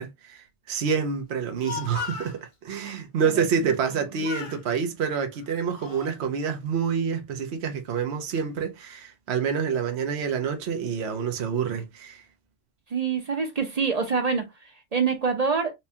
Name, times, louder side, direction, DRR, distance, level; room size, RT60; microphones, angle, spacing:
voice 1, 0.0-12.2, right 6 dB, 65° right, 1.0 m, -28 dB
Speech, 1.4-2.4 3.7-4.0 4.2-4.6 5.3-6.1, left 7 dB, 55° left, 0.8 m, -37 dB
voice 2, 12.9-14.5 14.9-15.7, right 5 dB, 40° right, 0.8 m, -25 dB
4.3 x 2.3 x 2.7 m
omnidirectional pair, 1.2 m